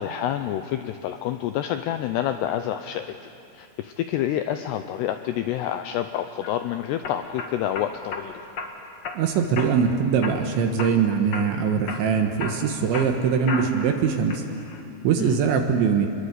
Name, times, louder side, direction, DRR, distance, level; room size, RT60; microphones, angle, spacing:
voice 1, 0.0-3.2 3.5-8.4 15.2-15.4, left 11 dB, 90° left, 8 dB, 2.4 m, -28 dB
sound 1, 6.1-6.5 7.0-8.2 8.6-9.2 9.5-9.9 10.2-11.0 11.3-11.6 11.9-13.9 14.3-14.8, left 4 dB, 55° left, 1.8 m, -34 dB
voice 2, 9.2-14.4 15.0-16.1, right 6 dB, 75° right, 4 dB, 3.5 m, -22 dB
26.0 x 22.0 x 8.2 m, 2.8 s
omnidirectional pair, 5.7 m